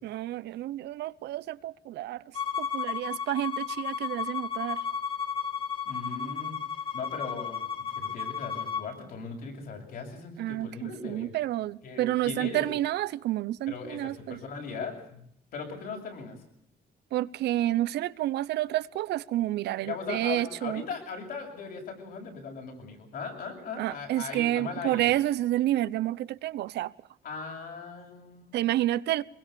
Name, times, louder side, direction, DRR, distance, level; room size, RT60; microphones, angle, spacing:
voice 1, 0.0-2.2 2.6-4.8 10.4-14.4 17.1-20.8 23.8-26.9 28.5-29.2, right 14 dB, 85° right, 0.9 m, -29 dB
Bowed string instrument, 2.3-8.9, left 6 dB, 30° left, 2.3 m, -33 dB
voice 2, 5.8-6.6 6.9-7.7 7.9-11.3 11.8-12.7 13.7-15.3 15.5-16.4 19.8-25.0 27.2-28.7, left 5 dB, 60° left, 8.0 m, -38 dB
24.5 x 22.0 x 7.0 m
cardioid pair, 155°, 17 cm